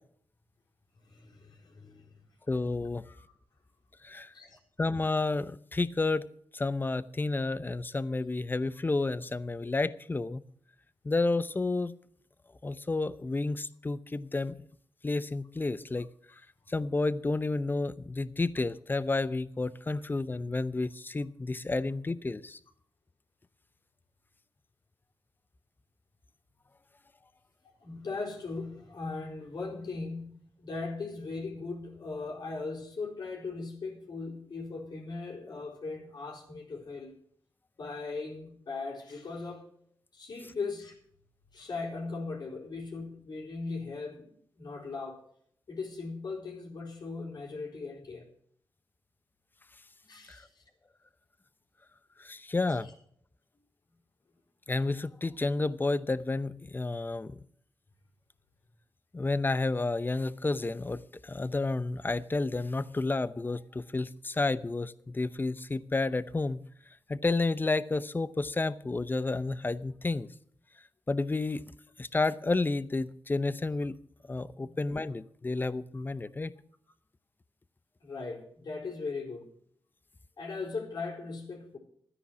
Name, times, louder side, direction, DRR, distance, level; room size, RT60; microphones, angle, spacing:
voice 1, 1.0-2.2 3.0-3.3 4.3-4.6 9.6-9.7 27.8-37.2 37.8-39.6 40.1-41.0 41.5-45.2 45.7-48.3 50.1-50.6 52.8-52.9 74.5-74.8 75.9-76.0 78.0-79.5 80.4-81.8, left 3 dB, 65° left, -1 dB, 4.2 m, -39 dB
voice 2, 2.5-3.0 4.0-4.3 4.8-6.3 6.5-10.4 11.0-11.9 12.6-14.5 15.0-16.1 16.7-22.6 50.3-50.4 52.2-52.9 54.7-57.3 59.1-66.6 67.1-70.3 71.1-71.6 72.0-73.9 74.3-76.5, left 3 dB, 25° left, 16 dB, 0.7 m, -31 dB
13.0 x 9.9 x 6.1 m, 0.63 s
wide cardioid pair, 85°, 8 cm